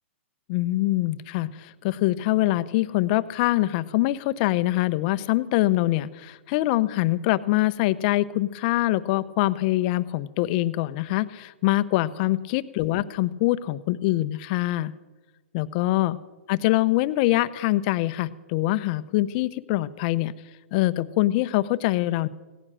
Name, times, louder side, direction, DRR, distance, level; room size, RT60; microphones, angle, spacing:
voice 1, 0.5-14.9 15.5-16.2 16.5-20.3 20.7-22.3, left 17 dB, 45° left, 16 dB, 0.8 m, -24 dB
17.5 x 9.9 x 7.6 m, 1.2 s
hypercardioid pair, 125°, 7 cm